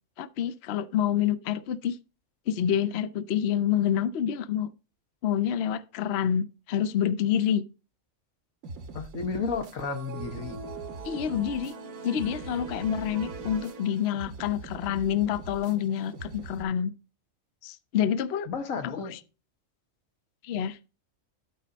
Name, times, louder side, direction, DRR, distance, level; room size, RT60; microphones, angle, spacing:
voice 1, 0.2-2.0 2.5-4.7 5.2-7.6 11.0-11.7 12.0-16.9 17.6-18.5 19.1-19.2 20.4-20.8, left 9 dB, 60° left, 0.8 m, -27 dB
sound 1, 8.6-16.6, right 3 dB, 80° right, 1.4 m, -43 dB
voice 2, 8.9-10.6 18.5-19.2, left 5 dB, 90° left, 1.6 m, -32 dB
sound 2, 9.8-14.4, right 4 dB, 55° right, 1.0 m, -42 dB
12.5 x 4.2 x 5.1 m
omnidirectional pair, 1.4 m